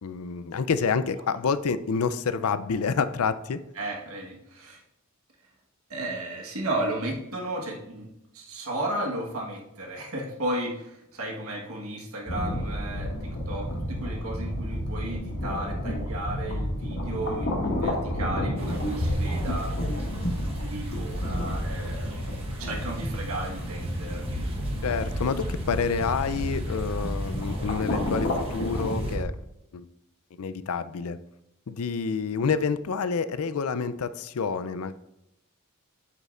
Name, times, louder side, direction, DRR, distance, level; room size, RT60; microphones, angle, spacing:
voice 1, 0.0-3.6 24.8-29.3 29.7-29.8 30.4-31.2 31.7-34.9, left 5 dB, 80° left, 14 dB, 0.5 m, -28 dB
voice 2, 3.7-4.8 5.9-8.1 8.3-19.7 20.6-22.1 22.6-24.9, right 1 dB, 75° right, -1 dB, 1.4 m, -34 dB
sound 1, 12.3-29.2, equal, 65° left, 2.0 m, -30 dB
sound 2, 18.6-29.2, right 1 dB, 25° right, 1.3 m, -42 dB
8.4 x 8.2 x 2.5 m, 0.84 s
head